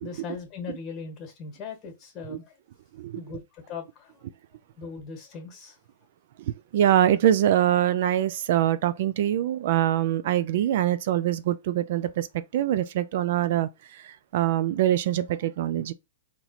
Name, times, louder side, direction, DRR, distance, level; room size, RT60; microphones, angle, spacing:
voice 1, 0.0-2.5 3.1-4.2 4.8-5.8, left 5 dB, 25° left, 1.4 m, -39 dB
voice 2, 6.7-12.3 12.5-15.9, right 11 dB, 55° right, 0.3 m, -24 dB
3.9 x 3.0 x 2.9 m
hypercardioid pair, 150°, 0 cm